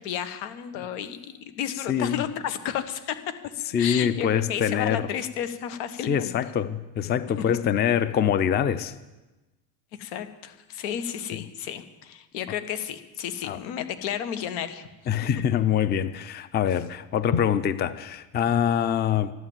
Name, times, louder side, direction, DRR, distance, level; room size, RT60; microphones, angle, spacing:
voice 1, 0.0-3.2 3.8-6.3 10.0-14.9, left 9 dB, 90° left, 10 dB, 1.7 m, -32 dB
voice 2, 1.9-2.2 3.7-5.1 6.1-8.9 13.4-13.6 15.1-19.3, left 8 dB, 20° left, 15 dB, 0.5 m, -24 dB
13.5 x 12.5 x 7.4 m, 1.1 s
cardioid pair, 135°, 49 cm